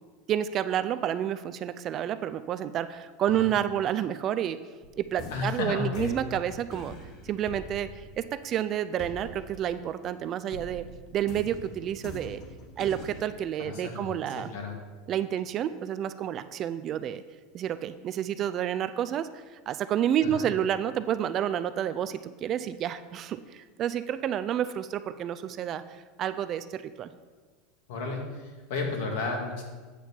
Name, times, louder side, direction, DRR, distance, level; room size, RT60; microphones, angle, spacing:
voice 1, 0.3-4.6 5.0-6.9 7.2-10.9 11.1-12.4 12.8-14.5 15.1-17.2 17.5-27.1, right 10 dB, 30° right, 12 dB, 0.3 m, -30 dB
sound 1, 4.8-10.2 10.5-13.3, left 2 dB, 40° left, 0.9 m, -44 dB
voice 2, 5.3-6.2 13.6-14.8 20.2-20.5 27.9-29.6, left 3 dB, 70° left, 1 dB, 1.9 m, -33 dB
8.4 x 4.4 x 7.0 m, 1.4 s
supercardioid pair, 160°, 0 cm